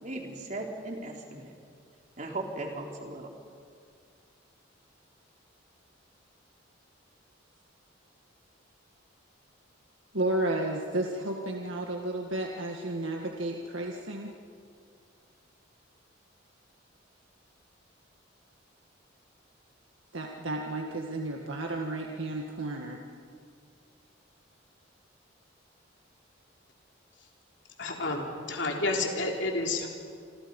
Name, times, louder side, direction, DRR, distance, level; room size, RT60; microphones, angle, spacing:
voice 1, 0.0-1.5 2.2-3.3, right 2 dB, 40° right, 1 dB, 3.4 m, -37 dB
voice 2, 10.1-14.3 20.1-23.0, right 1 dB, 75° right, 1 dB, 1.8 m, -32 dB
voice 3, 27.8-29.9, left 2 dB, 60° left, 1 dB, 3.8 m, -30 dB
27.5 x 27.0 x 5.5 m, 2.3 s
head